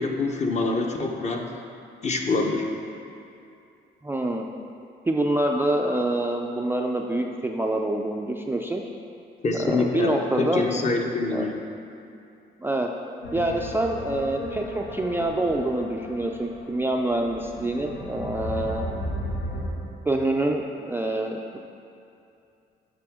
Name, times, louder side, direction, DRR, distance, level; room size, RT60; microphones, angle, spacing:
voice 1, 0.0-1.5 2.0-2.7 9.4-11.6, left 3 dB, 35° left, 2 dB, 0.7 m, -25 dB
voice 2, 4.0-4.4 5.1-8.8 9.6-10.6 11.3-11.5 12.6-12.9 13.3-18.9 20.1-21.6, right 1 dB, 10° right, 1 dB, 0.3 m, -26 dB
sound 1, 13.2-19.7, equal, 85° left, 1.1 m, -35 dB
7.6 x 5.2 x 3.6 m, 2.6 s
cardioid pair, 90°, 20 cm